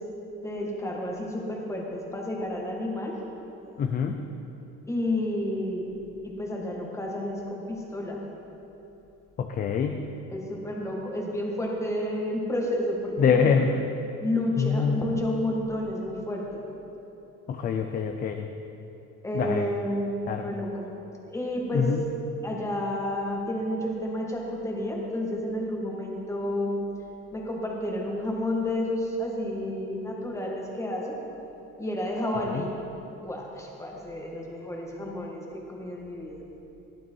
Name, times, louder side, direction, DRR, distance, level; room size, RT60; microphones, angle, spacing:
voice 1, 0.4-3.2 4.9-8.2 10.3-13.7 14.2-16.6 19.2-20.1 20.4-20.9 21.2-21.9 22.4-26.8 27.3-31.2 31.8-32.7 33.1-36.4, left 1 dB, 10° left, -1 dB, 1.6 m, -31 dB
voice 2, 3.8-4.2 9.4-10.1 13.2-13.7 14.6-15.0 17.5-18.5 19.3-19.7 20.3-20.5 21.7-22.0 32.5-32.6, left 6 dB, 30° left, 5 dB, 0.4 m, -25 dB
15.0 x 11.5 x 4.6 m, 3.0 s
cardioid pair, 170°, 31 cm